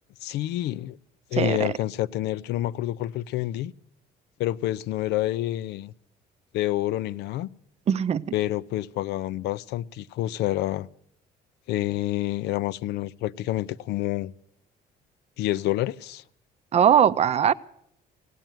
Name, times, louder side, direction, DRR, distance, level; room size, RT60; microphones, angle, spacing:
voice 1, 0.2-1.0 1.3-3.7 4.4-5.9 6.5-7.5 8.3-10.9 11.7-14.3 15.4-16.2, left 14 dB, 80° left, 0.5 m, -28 dB
voice 2, 1.3-1.7 7.9-8.2 16.7-17.5, right 8 dB, 40° right, 0.5 m, -20 dB
16.5 x 9.1 x 9.1 m
cardioid pair, 110°, 17 cm